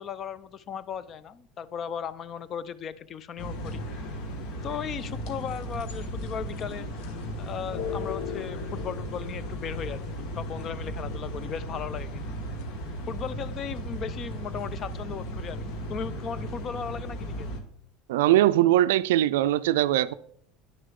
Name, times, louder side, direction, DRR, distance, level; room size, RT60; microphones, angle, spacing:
voice 1, 0.0-3.8 4.6-6.9 7.4-12.3 13.1-17.5, left 7 dB, 40° left, 0.5 m, -36 dB
sound 1, 3.4-17.6, equal, 65° left, 1.3 m, -36 dB
sound 2, 7.7-17.9, left 8 dB, 85° left, 0.6 m, -43 dB
voice 2, 18.1-20.1, right 14 dB, 85° right, 0.3 m, -21 dB
9.9 x 6.5 x 3.7 m
supercardioid pair, 95°, 0 cm